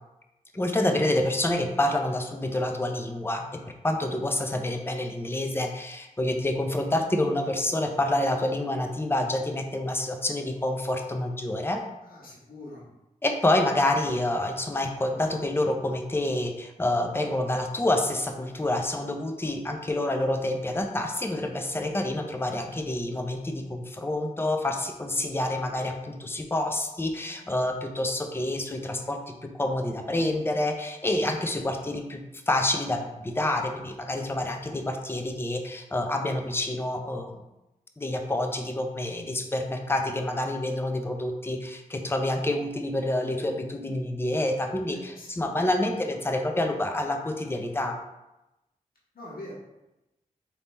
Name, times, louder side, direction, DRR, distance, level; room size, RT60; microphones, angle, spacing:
voice 1, 0.5-11.8 13.2-37.3 38.0-48.0, left 1 dB, 15° left, 4 dB, 0.6 m, -28 dB
voice 2, 12.0-12.8 44.9-45.3 45.8-46.2 49.1-49.5, left 1 dB, 75° left, -6 dB, 1.4 m, -44 dB
3.4 x 2.8 x 4.2 m, 0.95 s
cardioid pair, 45°, 15 cm